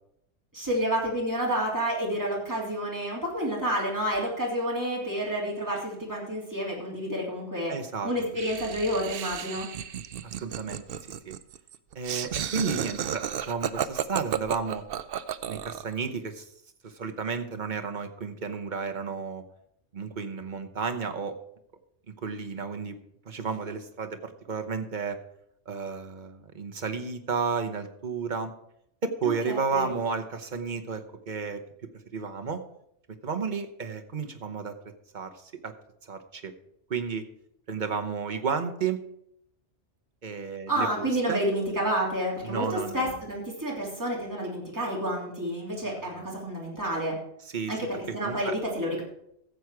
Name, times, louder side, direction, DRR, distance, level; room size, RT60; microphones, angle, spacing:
voice 1, 0.5-7.7 8.0-9.7 29.2-29.9 40.7-47.1 47.7-49.0, equal, 15° right, -3 dB, 3.2 m, -29 dB
voice 2, 7.7-8.1 10.2-10.8 11.2-11.4 11.9-14.8 15.5-16.5 16.8-19.4 19.9-21.3 22.1-23.0 23.2-25.2 25.7-28.5 29.0-31.6 32.1-32.6 33.2-34.7 35.1-35.7 36.0-36.5 36.9-37.3 37.7-39.0 40.2-41.4 42.4-43.2 45.8-46.0 47.4-47.8 48.1-48.6, right 5 dB, 40° right, 6 dB, 1.0 m, -32 dB
Laughter, 8.4-15.9, right 9 dB, 60° right, 0.7 m, -33 dB
14.5 x 7.9 x 4.8 m, 0.75 s
omnidirectional pair, 1.2 m